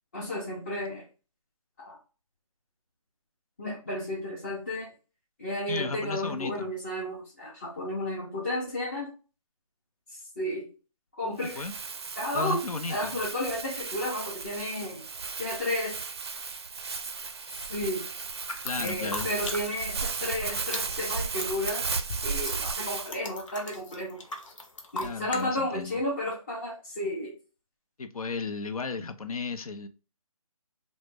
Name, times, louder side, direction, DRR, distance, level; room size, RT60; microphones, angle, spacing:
voice 1, 0.1-1.1 1.8-2.0 3.6-4.9 5.4-9.1 10.1-10.7 11.1-11.6 12.2-12.6 12.9-15.0 15.4-16.1 17.5-18.0 18.8-21.9 22.2-24.2 24.9-27.3, left 1 dB, 20° left, 0.5 m, -32 dB
voice 2, 5.7-6.7 11.5-11.7 12.3-13.2 18.6-19.3 25.0-26.0 28.0-29.9, left 4 dB, 80° left, 0.6 m, -34 dB
Crumpling crinkling, 11.4-23.1, right 5 dB, 45° right, 0.4 m, -35 dB
sound 1, 18.3-20.0 20.3-25.4, left 2 dB, 60° left, 0.9 m, -39 dB
3.0 x 2.1 x 3.4 m
hypercardioid pair, 165°, 18 cm